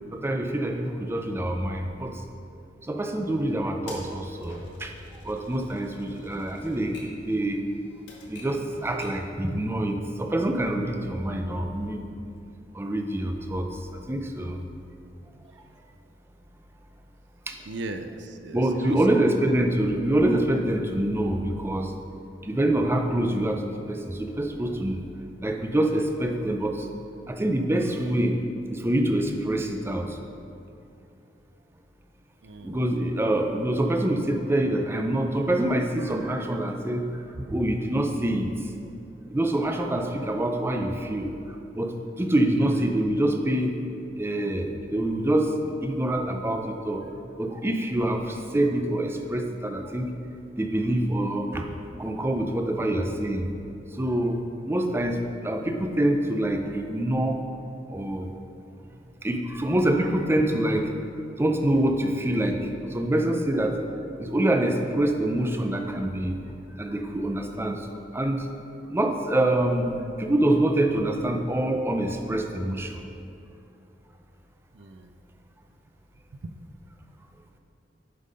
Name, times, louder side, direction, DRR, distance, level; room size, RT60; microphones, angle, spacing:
voice 1, 0.1-2.2 2.9-4.9 5.2-7.6 8.3-12.0 12.7-13.8 14.1-14.6 17.5-17.6 18.5-21.9 22.4-23.6 23.9-25.0 25.4-26.9 27.3-28.4 28.7-30.2 32.6-38.5 39.3-43.8 44.2-47.0 47.4-50.1 50.6-51.7 52.0-53.5 53.9-54.4 54.7-57.4 57.9-58.3 59.2-60.9 61.4-63.8 64.2-66.3 66.8-68.5 68.9-73.0, right 1 dB, 15° right, 4 dB, 0.5 m, -26 dB
Typewriter, 3.9-9.3, left 2 dB, 75° left, 1.6 m, -47 dB
voice 2, 17.7-19.7 32.4-32.9 42.6-43.0 74.7-75.2 76.3-76.5, right 2 dB, 70° right, 7 dB, 0.5 m, -39 dB
7.7 x 5.6 x 5.1 m, 2.6 s
head